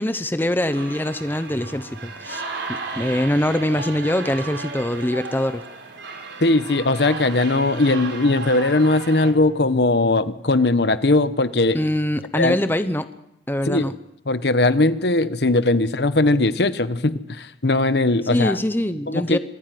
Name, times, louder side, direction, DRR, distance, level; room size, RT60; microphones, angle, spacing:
voice 1, 0.0-2.4 2.7-5.6 11.7-13.1 13.5-13.9 18.3-19.4, left 1 dB, 10° left, 11 dB, 0.8 m, -23 dB
sound 1, 0.7-9.3, right 4 dB, 80° right, 3.7 m, -34 dB
voice 2, 6.4-11.8 12.3-12.6 13.7-13.9 14.3-18.6 19.1-19.4, left 2 dB, 65° left, 13 dB, 1.0 m, -19 dB
25.0 x 16.0 x 9.3 m, 0.84 s
head